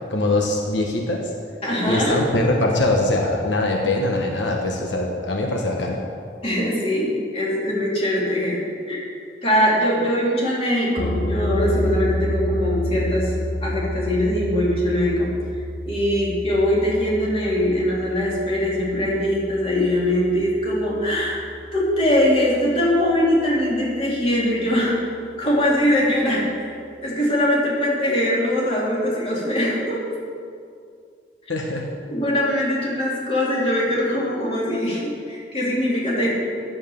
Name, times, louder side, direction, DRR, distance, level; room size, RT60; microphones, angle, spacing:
voice 1, 0.0-1.3 1.8-6.0 31.5-31.9, left 2 dB, 90° left, 1 dB, 1.2 m, -22 dB
voice 2, 1.6-2.1 6.4-8.6 8.9-9.0 9.4-13.3 13.6-15.3 15.9-21.4 21.7-25.0 25.4-26.7 27.0-30.0 32.1-36.3, equal, 30° left, -5 dB, 2.9 m, -22 dB
sound 1, 11.0-22.3, left 1 dB, 65° left, 0.9 m, -29 dB
9.8 x 7.5 x 7.0 m, 2.3 s
head